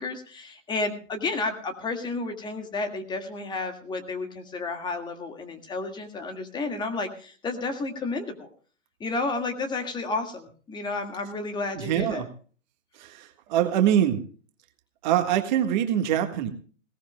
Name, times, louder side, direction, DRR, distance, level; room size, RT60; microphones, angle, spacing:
voice 1, 0.0-8.5 9.0-12.3, left 3 dB, 10° left, 5 dB, 1.8 m, -31 dB
voice 2, 11.8-12.3 13.0-14.2 15.0-16.5, right 10 dB, 35° right, 7 dB, 1.6 m, -24 dB
20.5 x 18.0 x 2.2 m, 0.41 s
figure-of-eight pair, 130°, 39 cm